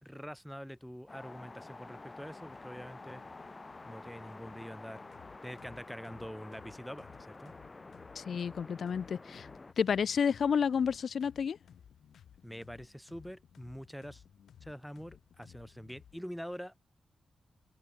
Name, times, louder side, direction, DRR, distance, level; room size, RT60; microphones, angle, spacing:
voice 1, 0.0-3.2 3.9-5.0 5.4-7.5 12.4-14.2 14.6-16.7, equal, ahead, 2.1 m, -45 dB
sound 1, 1.1-9.7, left 3 dB, 30° left, 2.6 m, -49 dB
sound 2, 2.2-16.2, left 9 dB, 90° left, 2.1 m, -59 dB
voice 2, 8.2-9.5 9.8-11.6, left 7 dB, 70° left, 0.5 m, -30 dB
cardioid pair, 90°, 0 cm